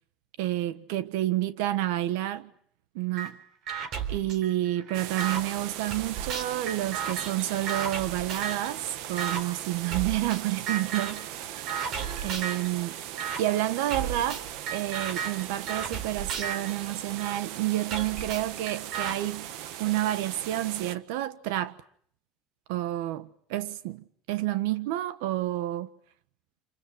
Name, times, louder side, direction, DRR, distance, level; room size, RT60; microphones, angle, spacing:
voice 1, 0.4-2.5 2.9-3.4 4.1-11.8 12.2-13.0 13.4-14.4 14.7-19.5 19.8-21.7 22.7-25.9, right 14 dB, 90° right, 1.4 m, -29 dB
sound 1, 3.2-3.3 3.7-5.4 5.9-8.7 9.2-9.4 9.9-10.4 10.7-11.3 11.7-12.7 13.2-13.4 13.9-17.4 17.9-19.1, right 7 dB, 45° right, 3.5 m, -34 dB
sound 2, 4.9-21.0, right 11 dB, 70° right, 1.5 m, -39 dB
28.0 x 27.5 x 7.8 m
cardioid pair, 145°, 0 cm